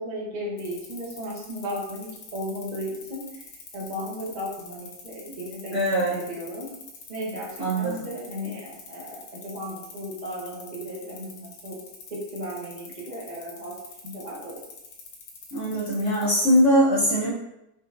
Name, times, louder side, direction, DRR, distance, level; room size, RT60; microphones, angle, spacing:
voice 1, 0.0-5.8 6.1-6.7 7.1-11.8 12.1-14.6, equal, 30° right, -4 dB, 1.0 m, -35 dB
sound 1, 0.6-16.6, left 5 dB, 90° left, 1.5 m, -45 dB
voice 2, 5.7-6.1 7.6-8.0 15.5-17.3, equal, 55° right, -8 dB, 1.0 m, -21 dB
6.5 x 2.6 x 2.5 m, 0.89 s
omnidirectional pair, 1.9 m